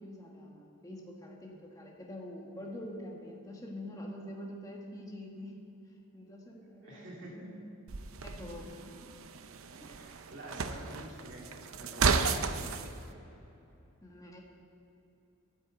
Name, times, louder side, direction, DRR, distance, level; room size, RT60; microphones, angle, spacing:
voice 1, 0.0-5.7 6.1-7.6 8.2-8.9 9.8-10.0 14.0-14.4, left 1 dB, 15° left, -1 dB, 1.5 m, -45 dB
voice 2, 6.8-7.5 9.9-12.9, right 1 dB, 60° right, -2 dB, 2.6 m, -48 dB
sound 1, 7.9-12.9, right 5 dB, 80° right, 0.6 m, -33 dB
9.4 x 9.0 x 8.0 m, 2.8 s
head